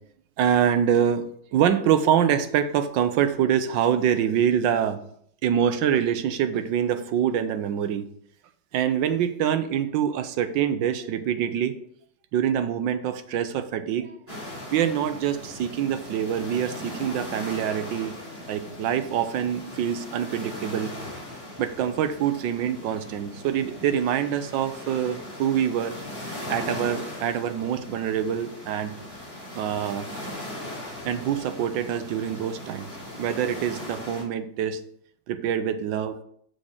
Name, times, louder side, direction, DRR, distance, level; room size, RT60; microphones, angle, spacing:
voice 1, 0.4-5.0 5.4-8.0 8.7-11.8 12.3-14.2 14.7-18.1 18.5-20.9 21.6-26.0 26.5-28.9 29.5-30.1 31.0-32.9 33.2-34.8 35.3-36.2, right 9 dB, 75° right, 10 dB, 1.3 m, -25 dB
sound 1, 14.3-34.2, left 1 dB, 5° right, 3.8 m, -39 dB
6.3 x 4.9 x 6.4 m, 0.65 s
omnidirectional pair, 2.2 m